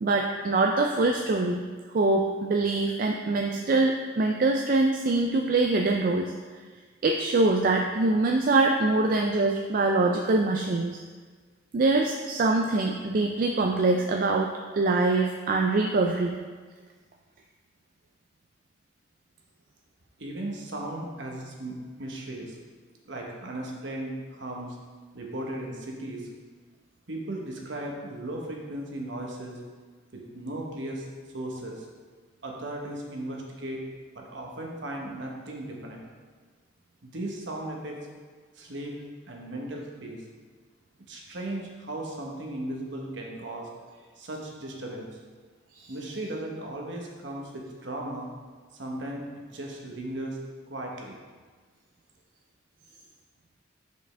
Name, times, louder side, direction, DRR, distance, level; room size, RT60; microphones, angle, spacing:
voice 1, 0.0-1.6 1.9-6.3 7.0-11.0 11.7-16.4 45.8-45.9, right 2 dB, 45° right, 2 dB, 0.3 m, -24 dB
voice 2, 20.2-22.6 23.1-24.8 25.1-26.3 27.1-29.6 30.1-31.0 31.3-31.9 32.4-33.8 34.1-36.0 37.0-38.0 38.5-39.0 39.3-40.2 41.1-43.7 44.0-45.2 45.9-48.3 48.7-49.3 49.5-50.4 50.7-51.2, right 1 dB, 60° right, -1 dB, 1.0 m, -36 dB
6.4 x 5.2 x 3.3 m, 1.5 s
head